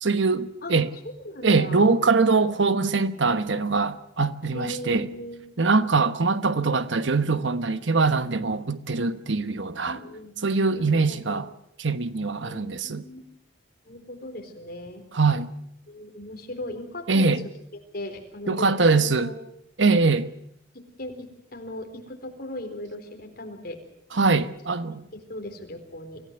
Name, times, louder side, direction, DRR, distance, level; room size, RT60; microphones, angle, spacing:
voice 1, 0.0-0.9 1.4-5.1 5.6-10.0 10.4-11.5 11.8-13.0 15.1-15.5 17.1-17.4 18.5-19.3 19.8-20.3 24.1-25.0, right 4 dB, 75° right, 1.1 m, -23 dB
voice 2, 0.6-1.9 4.5-5.4 5.8-5.9 9.8-11.4 12.4-13.2 13.9-15.0 15.9-17.3 17.9-19.3 19.9-20.0 21.0-23.8 25.1-26.2, left 1 dB, 55° left, 4.2 m, -38 dB
25.0 x 15.5 x 7.9 m
head